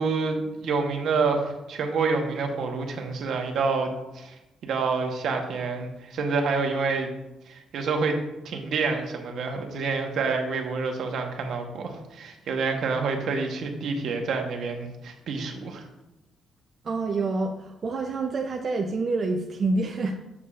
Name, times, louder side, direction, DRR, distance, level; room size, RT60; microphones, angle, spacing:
voice 1, 0.0-4.3 4.6-7.1 7.5-8.2 8.4-15.9, right 4 dB, 70° right, 4 dB, 1.1 m, -28 dB
voice 2, 16.8-20.1, right 3 dB, 45° right, 3 dB, 0.6 m, -27 dB
7.1 x 6.5 x 2.5 m, 0.95 s
cardioid pair, 90°, 0 cm